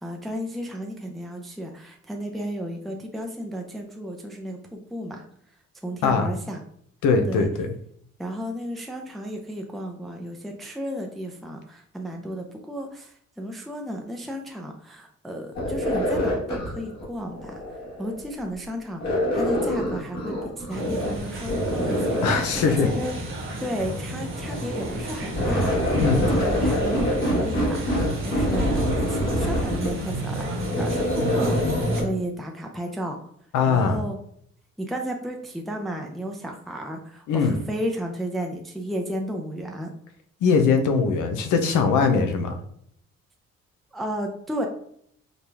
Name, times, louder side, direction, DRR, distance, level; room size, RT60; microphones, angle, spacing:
voice 1, 0.0-5.2 5.8-6.6 7.3-7.5 8.2-17.6 18.0-23.1 23.6-26.0 26.3-33.2 33.7-34.2 34.8-39.9 43.9-44.7, equal, ahead, 2 dB, 0.5 m, -33 dB
voice 2, 7.0-7.7 22.2-22.9 25.9-26.3 33.5-34.0 37.3-37.6 40.4-42.6, left 5 dB, 90° left, 6 dB, 0.7 m, -21 dB
sound 1, 15.5-18.3 19.0-21.2 21.4-23.2 24.3-32.1, equal, 60° left, 1.7 m, -26 dB
sound 2, 20.7-32.0, right 1 dB, 45° right, 1.2 m, -32 dB
5.1 x 2.3 x 3.3 m, 0.68 s
cardioid pair, 90°, 30 cm